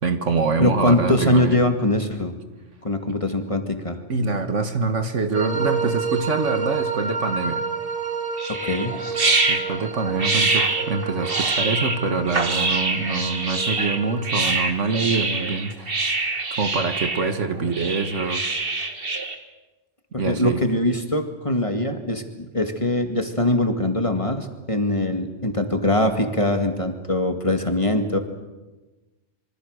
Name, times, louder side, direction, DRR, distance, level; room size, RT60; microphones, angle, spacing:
voice 1, 0.0-1.6 4.1-7.6 9.5-16.2 16.6-18.4 20.2-20.6, right 4 dB, 70° right, 8 dB, 1.9 m, -25 dB
voice 2, 0.6-2.3 2.8-4.0 8.5-8.9 20.1-28.2, left 1 dB, 25° left, 5 dB, 2.2 m, -22 dB
sound 1, 5.3-14.3, right 5 dB, 30° right, 1.9 m, -30 dB
sound 2, 8.4-19.3, right 3 dB, 45° right, 2.1 m, -25 dB
26.5 x 24.0 x 6.6 m, 1.2 s
omnidirectional pair, 1.3 m